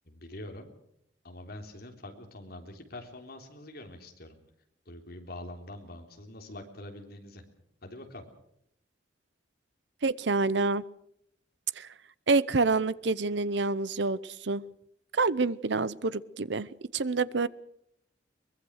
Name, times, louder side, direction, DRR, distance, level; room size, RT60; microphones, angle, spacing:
voice 1, 0.1-0.7 1.2-4.4 4.9-7.4 7.8-8.2, left 1 dB, 55° left, 4 dB, 3.6 m, -44 dB
voice 2, 10.0-10.8 11.8-11.9 12.3-14.6 15.1-17.5, right 3 dB, 65° right, 18 dB, 0.8 m, -27 dB
23.0 x 20.5 x 6.5 m, 0.74 s
head